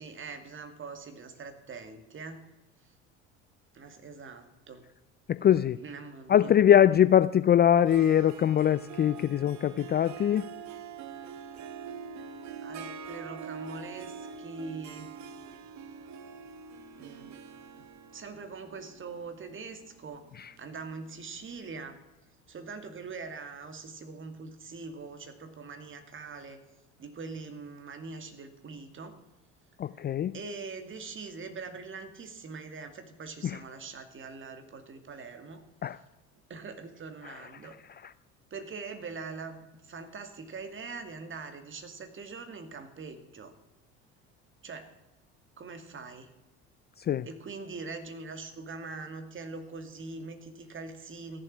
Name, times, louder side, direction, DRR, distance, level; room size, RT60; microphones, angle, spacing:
voice 1, 0.0-2.5 2.8-2.9 3.7-4.9 5.7-6.5 12.6-15.1 17.0-17.4 17.7-17.9 18.1-20.3 20.6-22.0 22.5-26.6 27.0-29.2 30.3-35.6 36.5-37.8 38.5-43.5 44.6-44.9 45.6-46.3 47.2-51.4, right 4 dB, 35° right, 8 dB, 2.4 m, -42 dB
voice 2, 5.3-5.8 6.3-10.4 29.8-30.3 33.4-33.6 35.8-36.0 47.0-47.3, left 10 dB, 30° left, 16 dB, 0.4 m, -22 dB
Harp, 7.9-21.4, right 6 dB, 50° right, 1.3 m, -45 dB
14.5 x 7.5 x 9.9 m, 1.1 s
hypercardioid pair, 75°, 35 cm